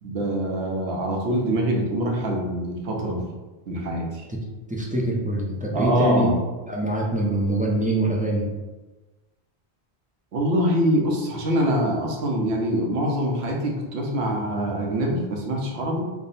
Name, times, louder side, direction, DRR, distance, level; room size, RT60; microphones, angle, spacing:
voice 1, 0.0-3.3 3.7-4.2 5.7-6.3 10.3-16.0, right 1 dB, 75° right, 0 dB, 1.0 m, -24 dB
voice 2, 4.7-6.3 6.7-8.5, right 1 dB, 10° right, -4 dB, 0.4 m, -24 dB
3.5 x 2.1 x 4.1 m, 1.2 s
omnidirectional pair, 1.1 m